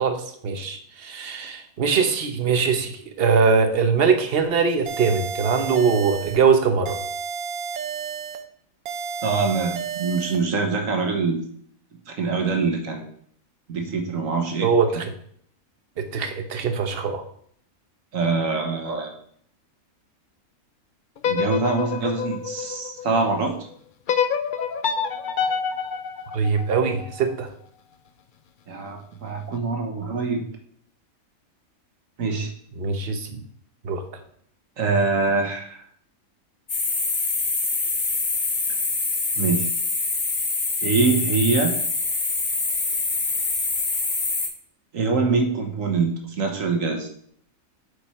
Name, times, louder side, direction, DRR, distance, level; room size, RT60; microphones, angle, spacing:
voice 1, 0.0-7.0 14.6-15.0 16.0-17.2 26.3-27.5 32.8-33.4 33.8-34.0, right 5 dB, 45° right, 6 dB, 1.1 m, -22 dB
sound 1, 4.9-6.4 6.9-8.4 8.9-10.4, right 6 dB, 90° right, 1.2 m, -31 dB
voice 2, 9.2-11.4 12.1-13.1 13.7-14.7 18.1-19.1 21.2-23.7 28.7-30.4 32.2-32.5 34.8-35.8 39.4-39.7 40.8-41.7 44.9-47.1, right 4 dB, 65° right, 3 dB, 1.6 m, -24 dB
sound 2, 21.2-23.4 24.1-27.2, left 6 dB, 60° left, 0.5 m, -27 dB
sound 3, 36.7-44.5, left 3 dB, 35° left, 1.6 m, -25 dB
7.9 x 5.1 x 4.3 m, 0.63 s
omnidirectional pair, 1.5 m